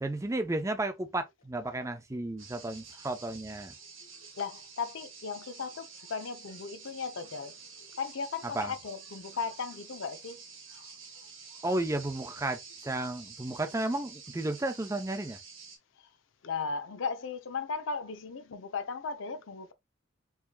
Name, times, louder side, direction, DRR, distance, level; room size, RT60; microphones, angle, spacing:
voice 1, 0.0-3.7 8.5-8.7 11.6-15.4, right 2 dB, 15° right, 0.5 m, -33 dB
sound 1, 2.4-15.8, right 5 dB, 90° right, 1.3 m, -49 dB
voice 2, 4.4-7.5 7.8-10.4 10.7-10.8 11.1-11.6 16.4-19.7, left 5 dB, 85° left, 0.6 m, -37 dB
4.7 x 2.8 x 2.2 m
head